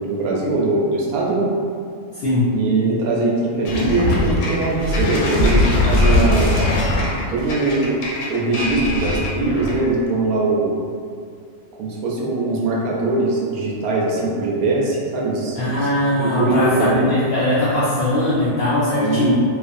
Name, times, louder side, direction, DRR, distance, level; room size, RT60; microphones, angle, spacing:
voice 1, 0.0-1.5 2.5-6.5 7.3-8.0 8.3-10.7 11.8-15.9 16.2-17.1 19.0-19.3, right 2 dB, 85° right, -3 dB, 1.0 m, -21 dB
voice 2, 2.1-2.4 15.5-19.3, left 1 dB, 70° left, -10 dB, 0.6 m, -19 dB
sound 1, 3.6-9.9, left 2 dB, 90° left, 1.0 m, -20 dB
2.5 x 2.4 x 2.5 m, 2.3 s
omnidirectional pair, 1.5 m